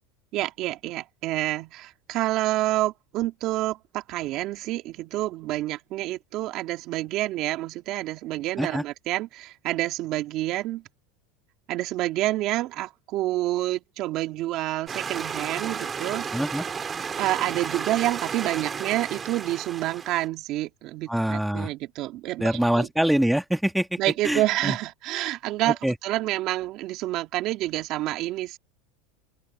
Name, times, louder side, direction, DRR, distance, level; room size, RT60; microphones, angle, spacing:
voice 1, 0.3-10.8 11.7-16.3 17.2-22.9 24.0-28.6, right 16 dB, 50° right, 2.3 m, -28 dB
sound 1, 14.9-20.3, right 6 dB, 25° right, 2.4 m, -33 dB
voice 2, 16.3-16.6 21.1-21.7 22.4-24.0 24.2-24.8 25.8-25.9, right 1 dB, ahead, 2.1 m, -24 dB
open air
supercardioid pair, 125°, 0 cm